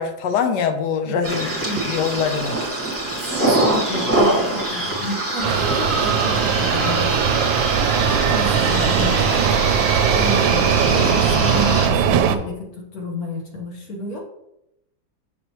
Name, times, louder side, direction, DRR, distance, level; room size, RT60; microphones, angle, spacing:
voice 1, 0.0-1.5 1.9-2.6, left 7 dB, 70° left, 7 dB, 1.2 m, -23 dB
sound 1, 1.2-11.9, right 1 dB, 10° right, 1.2 m, -24 dB
voice 2, 1.6-2.1 3.3-14.2, left 1 dB, 50° left, -1 dB, 1.4 m, -31 dB
sound 2, 5.4-12.4, right 8 dB, 75° right, 1.3 m, -19 dB
6.7 x 6.1 x 3.0 m, 0.86 s
omnidirectional pair, 2.1 m